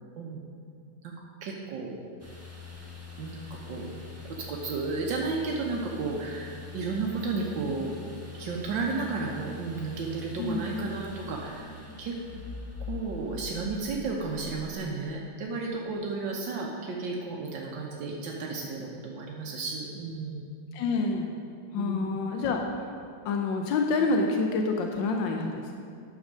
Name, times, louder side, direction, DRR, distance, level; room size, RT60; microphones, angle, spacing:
voice 1, 1.4-2.0 3.2-3.9 4.3-8.0 8.3-11.7 12.0-12.2 12.9-20.5 21.8-22.2, right 4 dB, 80° right, -1 dB, 1.7 m, -33 dB
sound 1, 2.2-14.7, left 4 dB, 10° right, 1.1 m, -43 dB
voice 2, 10.4-10.7 20.7-21.3 21.7-22.6 23.2-25.7, left 3 dB, 85° left, 2 dB, 1.5 m, -27 dB
9.9 x 6.2 x 6.2 m, 2.3 s
omnidirectional pair, 2.0 m